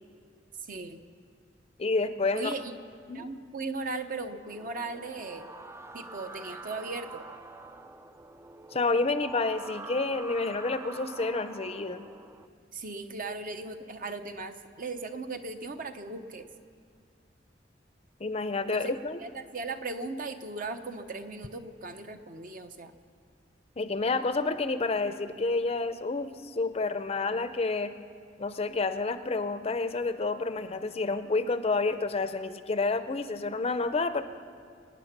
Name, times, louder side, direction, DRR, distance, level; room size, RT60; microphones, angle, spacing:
voice 1, 0.7-1.0 2.3-2.8 3.1-5.5 5.9-7.2 12.7-16.5 18.7-22.9, right 3 dB, 50° right, 7 dB, 0.9 m, -37 dB
voice 2, 1.8-2.5 3.1-3.3 8.7-12.0 18.2-19.2 23.8-27.9 28.4-34.2, left 3 dB, 35° left, 11 dB, 0.6 m, -29 dB
sound 1, 4.5-12.5, right 2 dB, 15° right, 0.4 m, -45 dB
25.5 x 9.5 x 5.9 m, 2.2 s
head